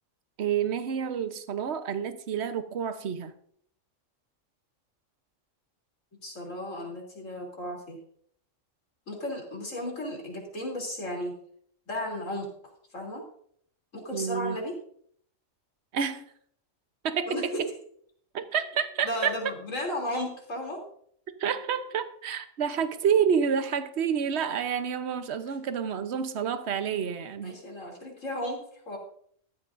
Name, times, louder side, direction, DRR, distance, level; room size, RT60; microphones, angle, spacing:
voice 1, 0.4-3.3 14.1-14.6 15.9-16.2 17.0-17.5 18.3-19.3 21.4-27.6, right 7 dB, 60° right, 10 dB, 1.1 m, -29 dB
voice 2, 6.2-8.0 9.1-11.3 11.9-12.5 12.9-13.2 13.9-14.8 17.3-17.6 19.0-20.8 27.4-29.0, left 1 dB, 80° left, -1 dB, 3.5 m, -34 dB
14.0 x 13.0 x 2.6 m, 0.62 s
omnidirectional pair, 1.3 m